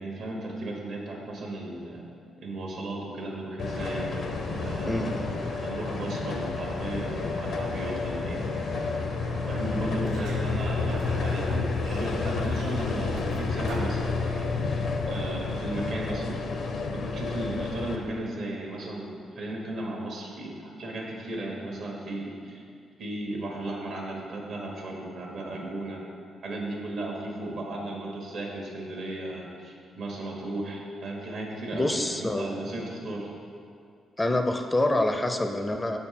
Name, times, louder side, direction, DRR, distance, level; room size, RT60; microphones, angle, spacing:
voice 1, 0.0-2.1 2.4-4.1 4.6-8.4 9.5-16.4 16.9-22.6 23.0-26.1 26.4-33.3, right 2 dB, 70° right, -1 dB, 1.4 m, -35 dB
sound 1, 3.6-18.0, left 4 dB, 65° left, 0.7 m, -30 dB
sound 2, 3.6-10.5, right 1 dB, 45° right, 0.7 m, -42 dB
voice 2, 4.8-5.3 31.7-32.7 34.2-36.0, left 1 dB, 15° left, 6 dB, 0.5 m, -26 dB
Sliding door, 10.0-14.7, right 2 dB, 90° right, 0.9 m, -41 dB
6.7 x 4.3 x 5.8 m, 2.4 s
cardioid pair, 85°, 0 cm